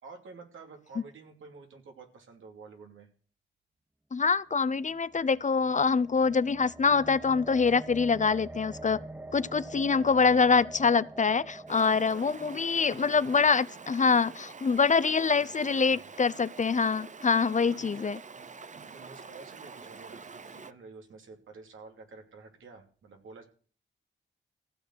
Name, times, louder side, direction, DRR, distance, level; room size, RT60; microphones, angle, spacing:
voice 1, 0.0-3.1 12.1-13.4 15.0-16.1 17.6-18.0 18.3-18.5 18.8-23.4, right 4 dB, 80° right, 2.9 m, -50 dB
voice 2, 4.1-9.0 9.3-18.2, left 5 dB, 40° left, 0.7 m, -25 dB
sound 1, 4.7-14.9, right 1 dB, 10° right, 0.9 m, -46 dB
Stream, 11.7-20.7, right 5 dB, 40° right, 0.8 m, -46 dB
15.5 x 6.5 x 7.8 m
cardioid pair, 50°, 20 cm